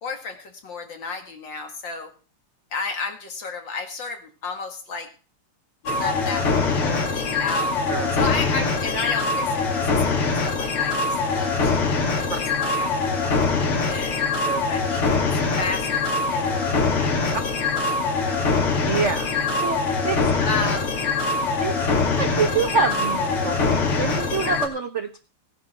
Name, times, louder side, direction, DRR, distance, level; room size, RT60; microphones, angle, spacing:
voice 1, 0.0-2.1 2.7-5.1 5.8-7.7 8.1-12.9 13.2-14.3 14.7-15.2 15.6-18.4 19.5-19.6 20.4-20.9 21.9-22.2, left 4 dB, 60° left, 4 dB, 2.7 m, -33 dB
sound 1, 5.9-24.7, left 4 dB, 80° left, 3.2 m, -23 dB
voice 2, 18.9-19.3 19.6-20.2 21.6-21.8 22.2-25.2, right 5 dB, 60° right, 8 dB, 0.7 m, -26 dB
17.0 x 10.0 x 4.4 m, 0.36 s
omnidirectional pair, 2.4 m